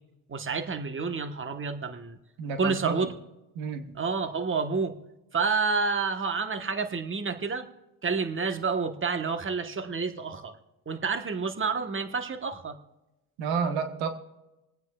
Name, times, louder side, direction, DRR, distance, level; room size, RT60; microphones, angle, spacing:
voice 1, 0.3-2.2 2.6-3.1 4.0-4.9 5.3-7.7 8.0-10.6 10.9-12.8, right 4 dB, 25° right, 8 dB, 1.3 m, -29 dB
voice 2, 2.4-3.1 3.5-3.9 13.4-14.1, right 5 dB, 85° right, 7 dB, 1.3 m, -30 dB
27.5 x 9.4 x 2.4 m, 0.99 s
supercardioid pair, 70°, 45 cm